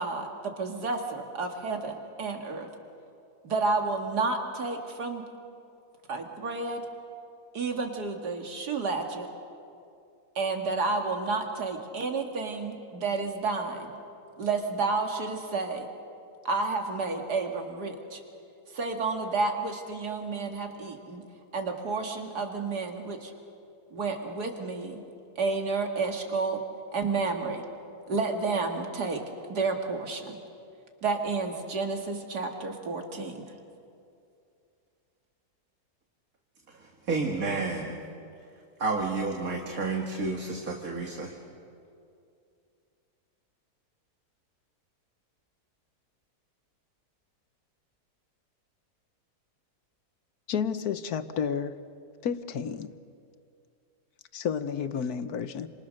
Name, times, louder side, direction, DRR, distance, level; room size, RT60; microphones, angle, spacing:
voice 1, 0.0-2.7 3.4-5.2 6.1-6.8 7.5-9.3 10.4-13.9 14.4-15.9 16.4-18.2 18.7-21.2 21.5-23.3 23.9-25.0 25.4-26.6 26.9-27.6 28.1-29.2 29.5-30.4 31.0-33.4, right 3 dB, 90° right, 3 dB, 2.6 m, -30 dB
voice 2, 36.7-38.0 38.8-41.3, right 3 dB, 60° right, 1 dB, 2.4 m, -31 dB
voice 3, 50.5-51.7 52.2-52.9 54.3-55.7, left 7 dB, 75° left, 11 dB, 1.5 m, -31 dB
29.0 x 27.0 x 6.5 m, 2.5 s
omnidirectional pair, 1.7 m